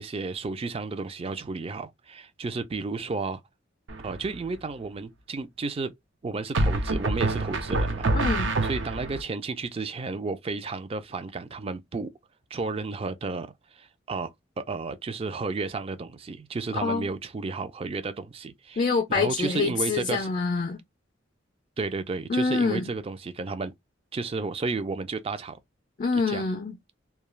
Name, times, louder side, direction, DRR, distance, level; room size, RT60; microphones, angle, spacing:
voice 1, 0.0-3.4 4.0-5.9 6.2-8.1 8.6-12.1 12.5-13.5 13.7-20.3 21.8-23.7 24.1-25.6 26.3-26.4, right 3 dB, 30° right, 0.4 m, -32 dB
sound 1, 3.9-4.4 6.6-9.2, right 2 dB, 75° right, 0.6 m, -26 dB
voice 2, 8.1-8.6 16.8-17.1 18.8-20.8 22.3-22.9 26.0-26.8, left 4 dB, 40° left, 0.4 m, -26 dB
2.3 x 2.3 x 3.0 m
head